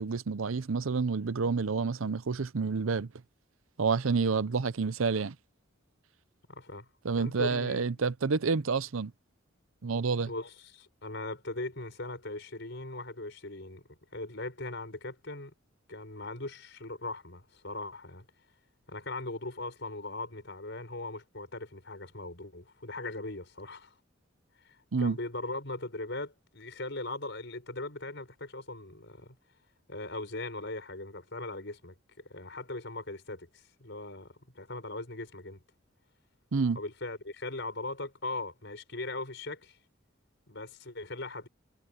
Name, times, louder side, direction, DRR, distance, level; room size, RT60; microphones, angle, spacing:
voice 1, 0.0-3.1 3.8-5.3 7.0-9.1 9.8-10.3 24.9-25.2 36.5-36.8, right 4 dB, 80° right, 0.7 m, -29 dB
voice 2, 6.5-7.9 10.3-15.5 15.9-18.3 18.9-23.9 24.6-29.4 29.9-31.9 32.3-35.6 36.7-39.8 40.5-41.5, left 2 dB, 60° left, 5.9 m, -39 dB
head